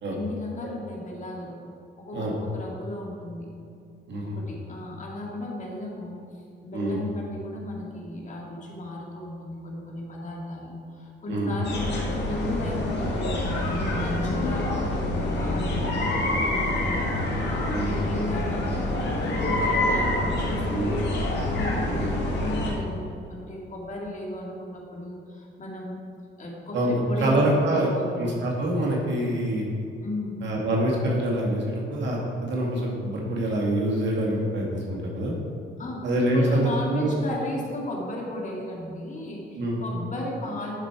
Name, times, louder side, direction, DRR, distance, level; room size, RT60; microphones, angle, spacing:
voice 1, 0.1-1.5 2.1-3.5 4.2-15.9 16.2-17.0 17.3-21.1 21.5-26.0 26.4-28.3 30.0-30.4 35.8-36.0 36.3-40.8, left 1 dB, 40° left, -2 dB, 2.1 m, -35 dB
sound 1, 11.6-22.7, left 1 dB, 60° left, 2.1 m, -26 dB
voice 2, 20.7-21.0 21.8-22.1 26.7-27.9 28.2-29.7 30.4-35.3 36.0-37.1 39.5-39.8, right 1 dB, 65° right, -3 dB, 2.3 m, -25 dB
11.0 x 5.2 x 4.7 m, 2.6 s
cardioid pair, 90°, 20 cm